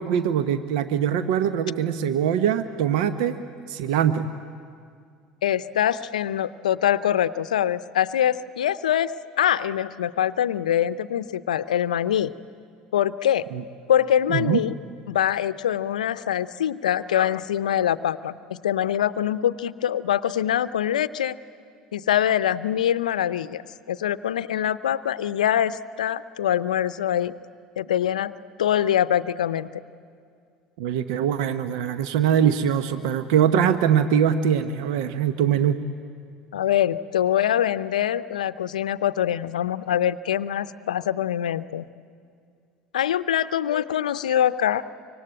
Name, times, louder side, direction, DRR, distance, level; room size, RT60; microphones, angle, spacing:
voice 1, 0.0-3.3 3.7-4.3 13.5-13.6 14.3-14.6 30.8-35.8, right 8 dB, 70° right, 11 dB, 0.9 m, -22 dB
voice 2, 5.4-9.1 9.4-12.3 12.9-13.4 13.9-14.7 15.1-21.4 21.9-23.6 23.9-27.3 27.8-28.3 28.6-29.7 36.5-41.8 42.9-44.8, left 10 dB, 80° left, 15 dB, 0.6 m, -24 dB
25.5 x 24.0 x 8.9 m, 2.2 s
hypercardioid pair, 70°, 4 cm